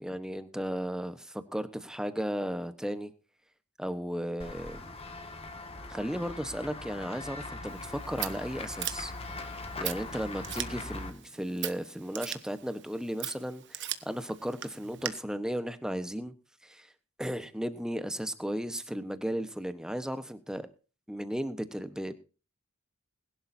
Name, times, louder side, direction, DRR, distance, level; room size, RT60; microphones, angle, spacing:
voice 1, 0.0-3.1 3.8-4.8 5.9-9.1 9.8-16.3 16.6-16.9 17.2-20.7 21.1-22.1, equal, 5° right, 1.0 m, -35 dB
Run / Walk footsteps / Bell, 4.4-11.1, left 2 dB, 25° left, 1.9 m, -41 dB
Scissors, 7.7-15.1, right 13 dB, 55° right, 1.2 m, -41 dB
21.0 x 11.5 x 2.7 m
head